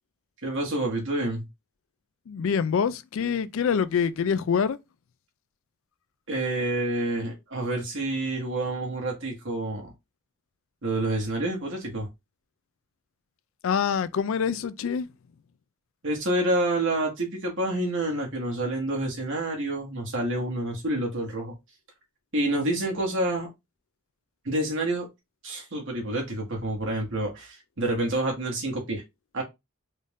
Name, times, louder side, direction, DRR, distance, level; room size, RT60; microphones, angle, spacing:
voice 1, 0.4-1.4 6.3-9.9 10.8-12.1 16.0-21.5 22.3-23.5 24.4-25.1 25.4-29.0 29.3-29.4, right 1 dB, 60° right, 1.7 m, -28 dB
voice 2, 2.3-4.8 13.6-15.1, left 6 dB, 65° left, 0.3 m, -25 dB
3.9 x 2.6 x 3.5 m
head